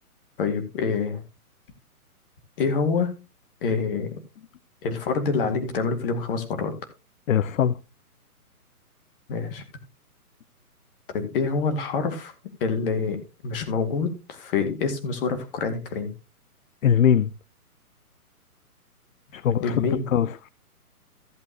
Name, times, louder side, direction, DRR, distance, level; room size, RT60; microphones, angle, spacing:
voice 1, 0.4-1.2 2.6-3.1 3.6-4.1 4.8-6.7 9.3-9.6 11.1-12.3 12.6-16.1 19.6-20.1, left 5 dB, 35° left, 2.2 m, -26 dB
voice 2, 7.3-7.8 16.8-17.3 19.3-19.8 20.1-20.5, left 9 dB, 60° left, 0.6 m, -21 dB
14.5 x 7.7 x 2.9 m
hypercardioid pair, 150°, 45 cm